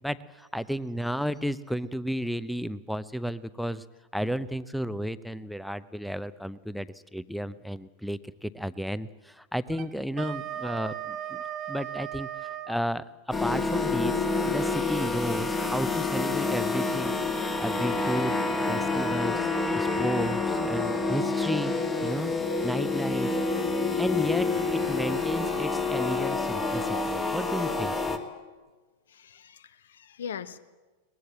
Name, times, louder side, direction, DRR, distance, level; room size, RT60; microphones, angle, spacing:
voice 1, 0.0-3.8 4.1-17.2 17.6-18.4 18.7-22.3 22.6-23.3 24.0-28.2, equal, ahead, 17 dB, 0.7 m, -33 dB
Wind instrument woodwind instrument, 9.7-12.8, right 11 dB, 30° right, 1.4 m, -36 dB
sound 1, 13.3-28.2, left 3 dB, 20° left, 2.2 m, -28 dB
voice 2, 29.1-30.6, left 7 dB, 65° left, 15 dB, 1.0 m, -40 dB
22.5 x 20.0 x 7.9 m, 1.3 s
figure-of-eight pair, 90°, 0 cm